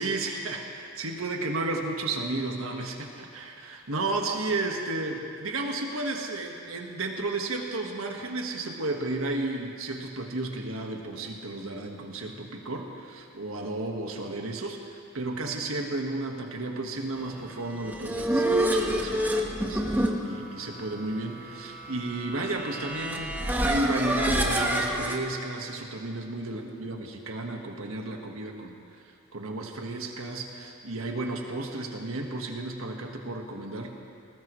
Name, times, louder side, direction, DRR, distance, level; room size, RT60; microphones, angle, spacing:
voice 1, 0.0-29.0 29.3-33.9, right 2 dB, 85° right, 2 dB, 1.6 m, -33 dB
sound 1, 17.6-25.2, right 1 dB, 10° right, 1.2 m, -28 dB
20.5 x 19.0 x 3.2 m, 2.5 s
head